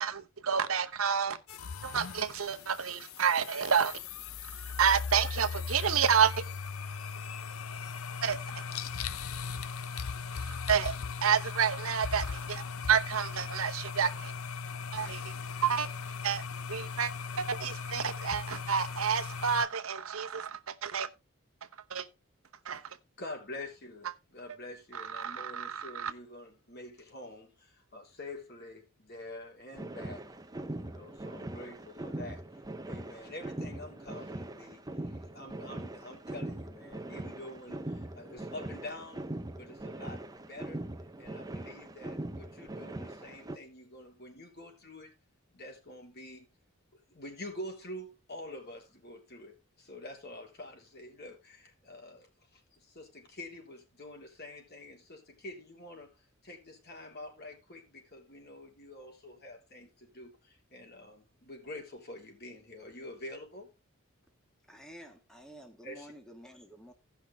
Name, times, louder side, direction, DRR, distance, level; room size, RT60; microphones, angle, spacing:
voice 1, 0.0-1.4 1.8-4.0 4.8-6.4 8.2-8.4 10.4-14.3 14.9-15.3 15.6-15.9 16.2-16.4 16.7-17.1 17.4-21.1 21.9-22.1 22.7-22.8 25.1-26.1, right 7 dB, 75° right, 0.9 m, -29 dB
sound 1, 1.5-19.7, left 5 dB, 80° left, 0.7 m, -38 dB
voice 2, 23.2-30.2 30.8-39.3 39.6-40.8 41.2-45.1 45.5-46.5 46.9-63.7 65.8-66.1, left 1 dB, 50° left, 3.5 m, -47 dB
sound 2, 29.7-43.6, right 1 dB, 15° right, 0.8 m, -41 dB
voice 3, 64.7-66.9, equal, 5° left, 1.6 m, -51 dB
17.0 x 5.8 x 3.3 m
head